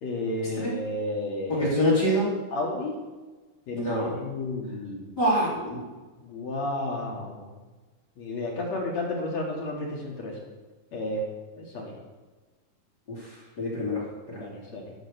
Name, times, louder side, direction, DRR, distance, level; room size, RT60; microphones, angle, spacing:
voice 1, 0.0-1.7 2.5-2.9 3.7-5.0 6.2-7.5 8.2-10.3 10.9-11.2 11.6-11.9 14.4-14.9, left 2 dB, 50° left, -2 dB, 3.3 m, -32 dB
voice 2, 1.5-2.3 3.7-4.2 5.2-5.9 13.2-13.3 13.6-14.0 14.3-14.4, equal, 30° left, -5 dB, 3.5 m, -25 dB
13.0 x 7.1 x 6.9 m, 1.3 s
omnidirectional pair, 4.2 m